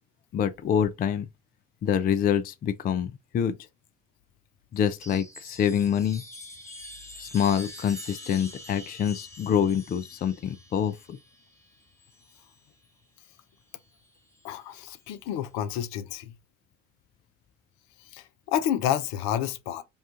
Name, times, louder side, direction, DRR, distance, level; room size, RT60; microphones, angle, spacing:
voice 1, 0.3-1.3 1.8-3.6 4.7-6.2 7.2-11.2, left 8 dB, 25° left, 0.4 m, -26 dB
Chime, 4.8-12.6 13.8-14.4, left 1 dB, 10° left, 1.4 m, -45 dB
voice 2, 14.4-16.3 18.1-19.8, left 10 dB, 60° left, 0.7 m, -29 dB
5.2 x 2.4 x 2.4 m
hypercardioid pair, 65°, 38 cm